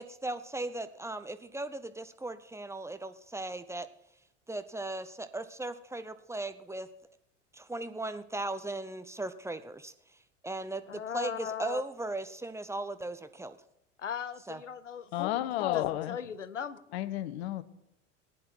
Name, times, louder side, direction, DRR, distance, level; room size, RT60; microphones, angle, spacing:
voice 1, 0.0-3.9 4.5-6.9 7.5-9.9 10.4-13.6 14.5-14.6, right 2 dB, 10° right, 11 dB, 0.8 m, -37 dB
voice 2, 10.9-11.8 14.0-15.4 15.7-16.8, left 8 dB, 90° left, 15 dB, 0.6 m, -38 dB
voice 3, 15.1-16.2 16.9-17.6, left 14 dB, 60° left, 14 dB, 1.1 m, -31 dB
18.5 x 10.0 x 4.5 m, 0.86 s
figure-of-eight pair, 75°, 36 cm